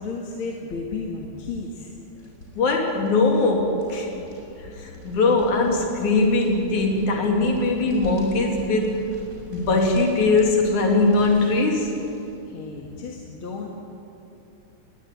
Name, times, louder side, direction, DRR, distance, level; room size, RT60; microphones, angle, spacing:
voice 1, 0.0-1.9 4.4-4.5 12.5-13.7, left 4 dB, 50° left, 0 dB, 2.4 m, -33 dB
sound 1, 1.8-12.4, equal, 25° right, 5.9 m, -44 dB
voice 2, 2.6-4.1 4.7-9.0 9.5-12.0, left 3 dB, 75° left, 2 dB, 4.2 m, -21 dB
21.0 x 20.0 x 9.4 m, 2.9 s
omnidirectional pair, 3.4 m